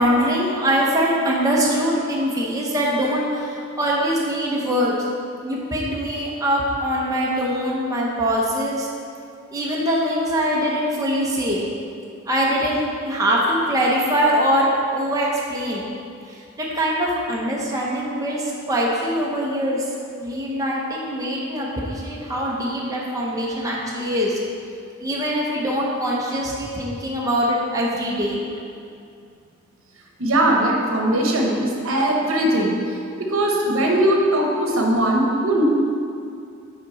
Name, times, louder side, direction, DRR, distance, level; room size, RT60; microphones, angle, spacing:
voice 1, 0.0-5.0 5.4-8.9 9.5-11.7 12.3-15.9 16.3-19.8 20.2-24.4 25.0-28.5, equal, 15° right, -4 dB, 0.7 m, -23 dB
voice 2, 30.2-32.7 33.3-35.6, right 1 dB, 75° right, -1 dB, 1.0 m, -20 dB
5.7 x 4.8 x 4.0 m, 2.4 s
head